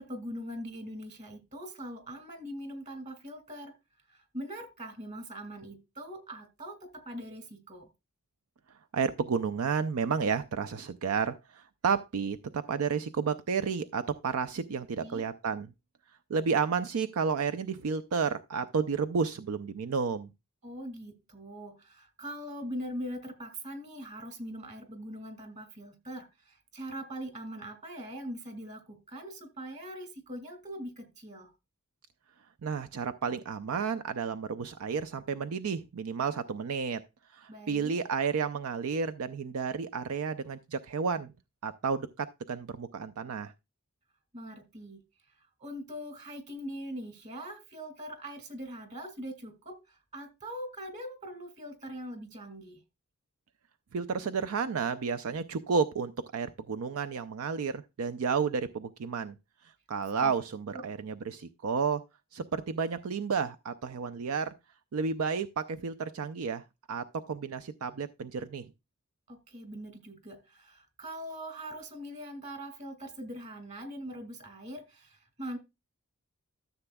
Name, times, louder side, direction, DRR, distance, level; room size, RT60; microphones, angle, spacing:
voice 1, 0.0-3.7 4.1-7.9 15.0-15.3 20.6-31.5 37.5-38.0 44.3-45.0 45.6-52.8 60.2-60.3 60.7-60.9 69.3-75.6, equal, 35° right, 2.1 m, -42 dB
voice 2, 8.9-15.7 16.3-20.3 32.6-37.0 37.3-41.3 41.6-43.5 53.9-59.4 59.9-62.0 62.3-64.5 64.9-68.7, right 5 dB, 75° right, 0.5 m, -31 dB
13.0 x 6.9 x 2.2 m
head